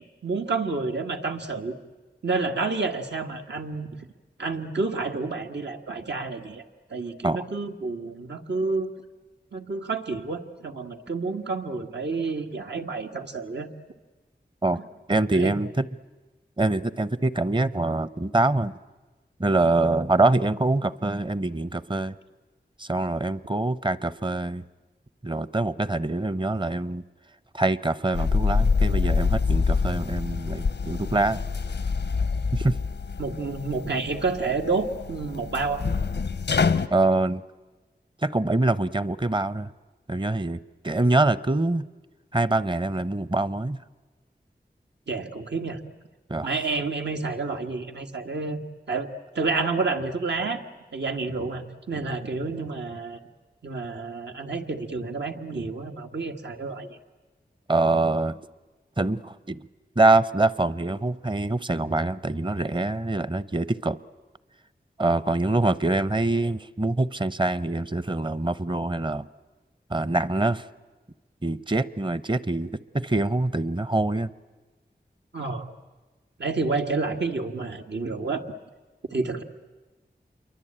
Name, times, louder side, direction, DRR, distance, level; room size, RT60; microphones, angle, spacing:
voice 1, 0.2-1.8 2.2-3.9 4.4-6.6 6.9-8.9 9.5-13.7 15.3-15.5 33.2-35.8 45.1-45.8 46.4-48.6 48.9-49.1 49.4-50.6 50.9-53.2 53.6-57.0 75.3-75.7 76.4-78.6 79.1-79.4, right 3 dB, 80° right, 4 dB, 1.7 m, -29 dB
voice 2, 15.1-15.8 16.6-18.7 19.4-22.1 22.8-24.6 25.2-27.0 27.5-31.4 32.5-32.8 36.9-37.4 38.2-39.7 40.1-40.6 40.8-41.8 42.3-43.8 46.3-46.5 57.7-58.3 59.0-59.6 60.0-64.0 65.0-69.3 69.9-70.6 71.4-74.3, right 2 dB, 25° right, 18 dB, 0.8 m, -24 dB
sound 1, 28.1-36.9, left 5 dB, 90° left, 0.8 m, -26 dB
28.0 x 23.5 x 8.9 m, 1.2 s
wide cardioid pair, 60°, 18 cm